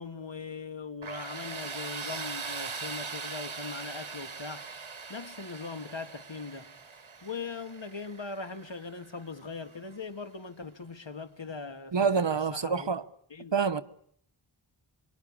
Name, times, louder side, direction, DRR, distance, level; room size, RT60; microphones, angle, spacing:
voice 1, 0.0-4.7 5.1-6.7 7.2-12.2 12.5-12.9 13.3-13.5, left 4 dB, 65° left, 2.0 m, -40 dB
Tools, 1.0-9.8, right 4 dB, 85° right, 1.6 m, -41 dB
voice 2, 11.9-13.0 13.5-13.8, right 5 dB, 65° right, 1.0 m, -27 dB
26.5 x 23.0 x 8.7 m
wide cardioid pair, 50°, 47 cm